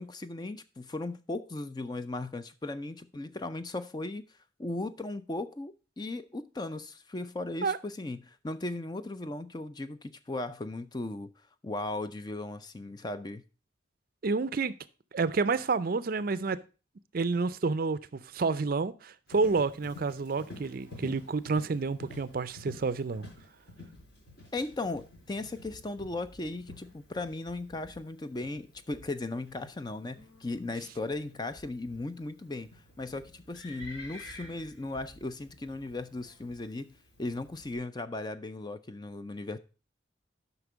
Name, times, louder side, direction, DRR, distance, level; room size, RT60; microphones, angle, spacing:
voice 1, 0.0-4.2 4.6-11.3 11.6-13.4 24.5-32.7 33.0-39.6, left 2 dB, 20° left, 0.4 m, -37 dB
voice 2, 14.2-14.7 15.1-16.6 17.1-23.2, right 4 dB, 50° right, 0.5 m, -29 dB
Livestock farm animals working animals, 19.3-37.8, left 2 dB, 60° left, 5.4 m, -51 dB
8.1 x 5.8 x 4.9 m
head